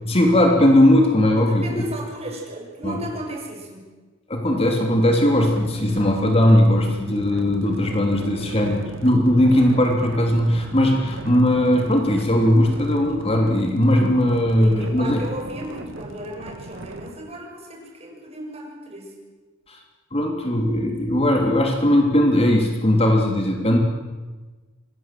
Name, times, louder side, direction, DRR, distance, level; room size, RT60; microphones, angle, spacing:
voice 1, 0.1-1.8 2.8-3.0 4.3-15.2 19.7-19.8 20.1-23.8, left 1 dB, 30° left, 2 dB, 3.1 m, -18 dB
voice 2, 1.4-3.9 8.6-9.0 14.6-19.1, right 1 dB, 35° right, 1 dB, 6.6 m, -35 dB
sound 1, 5.3-17.1, right 1 dB, 90° right, 2.1 m, -38 dB
25.5 x 21.5 x 7.6 m, 1.3 s
head